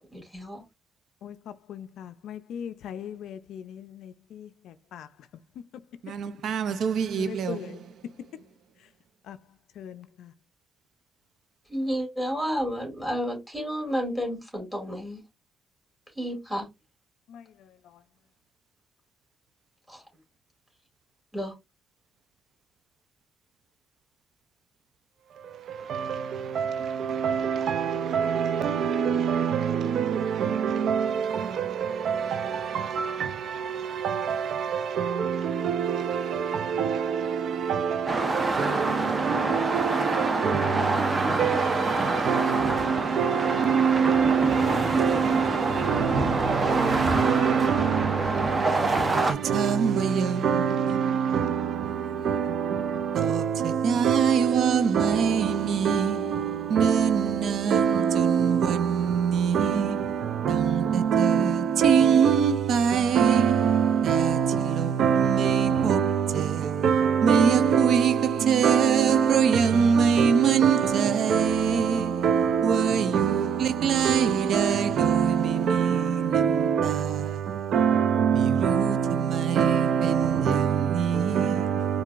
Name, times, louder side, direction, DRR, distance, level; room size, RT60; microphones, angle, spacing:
voice 1, 0.1-0.6 11.7-15.2 16.2-16.7 19.9-20.0 21.3-21.5, equal, 5° right, 2.3 m, -31 dB
voice 2, 1.2-5.1 7.2-7.8 9.3-9.4 9.8-10.3 17.3-17.4, left 9 dB, 80° left, 0.3 m, -40 dB
voice 3, 6.0-7.8 25.4-82.0, right 7 dB, 65° right, 0.4 m, -24 dB
sound 1, 38.1-49.3, right 2 dB, 30° right, 0.8 m, -26 dB
4.5 x 2.5 x 2.4 m
cardioid pair, 90°, 0 cm